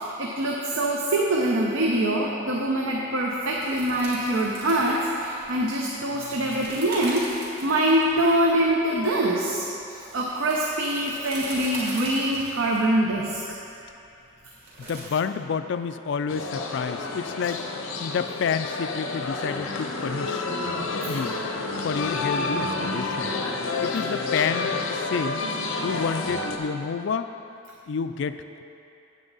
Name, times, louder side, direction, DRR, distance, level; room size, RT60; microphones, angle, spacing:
voice 1, 0.0-7.3 7.6-9.7 10.1-13.5, right 1 dB, 75° right, -2 dB, 0.7 m, -24 dB
sound 1, 3.6-15.0, right 1 dB, 50° right, 2.3 m, -40 dB
voice 2, 14.9-17.6 18.0-20.5 21.1-21.4 21.8-23.3 23.8-24.7 25.1-25.4 25.8-27.3 27.9-28.6, left 6 dB, 60° left, 11 dB, 0.3 m, -29 dB
sound 2, 16.3-26.6, left 3 dB, 80° left, 0.7 m, -29 dB
9.2 x 8.1 x 4.0 m, 2.8 s
head